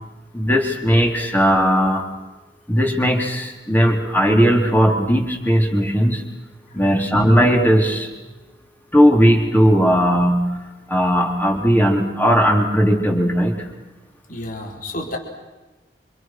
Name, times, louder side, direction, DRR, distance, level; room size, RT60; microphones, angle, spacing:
voice 1, 0.3-2.0 2.7-6.2 6.7-8.1 8.9-10.4 10.9-13.6, equal, 10° left, 1 dB, 4.2 m, -17 dB
voice 2, 6.7-7.2 14.3-15.2, left 1 dB, 50° left, 1 dB, 4.4 m, -32 dB
29.0 x 28.0 x 6.3 m, 1.2 s
head